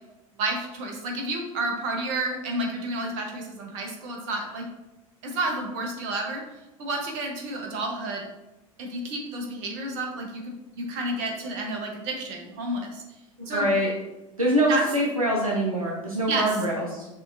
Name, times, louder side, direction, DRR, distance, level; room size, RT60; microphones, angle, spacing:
voice 1, 0.4-4.7 5.2-6.4 6.8-8.3 8.8-13.0 13.5-13.7 14.7-14.8 16.3-16.5, right 2 dB, 55° right, 2 dB, 1.0 m, -30 dB
voice 2, 13.4-13.9 14.4-17.1, equal, 90° right, -1 dB, 0.6 m, -24 dB
6.3 x 2.9 x 2.6 m, 1.0 s
figure-of-eight pair, 75°, 18 cm